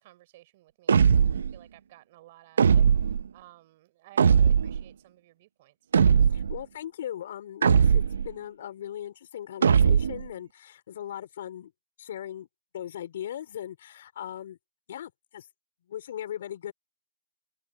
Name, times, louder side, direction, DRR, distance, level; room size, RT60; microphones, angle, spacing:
voice 1, 0.0-5.9, right 17 dB, 35° right, 5.5 m, -55 dB
sound 1, 0.9-1.5 2.6-3.3 4.2-4.8 5.9-6.6 7.6-8.3 9.6-10.3, right 7 dB, 70° right, 0.6 m, -20 dB
voice 2, 6.3-11.7 12.0-12.5 12.7-14.6 14.9-15.5 15.9-16.7, left 10 dB, 50° left, 4.4 m, -38 dB
hypercardioid pair, 160°, 0 cm